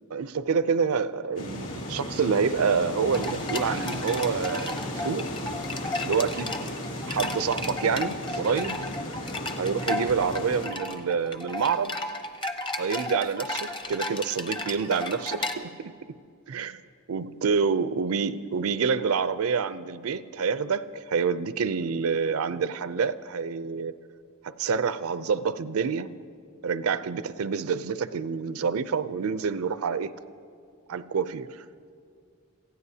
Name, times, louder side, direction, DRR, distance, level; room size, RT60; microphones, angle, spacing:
voice 1, 0.1-5.3 6.0-6.6 7.1-8.9 9.6-11.9 12.8-16.2 16.5-16.8 17.1-24.0 24.4-26.2 26.6-30.1 30.9-31.6, right 5 dB, 75° right, 0.5 m, -27 dB
sound 1, 1.4-10.7, left 1 dB, 65° left, 2.9 m, -35 dB
sound 2, 3.1-15.5, left 2 dB, 20° left, 0.8 m, -34 dB
26.5 x 16.0 x 2.8 m
head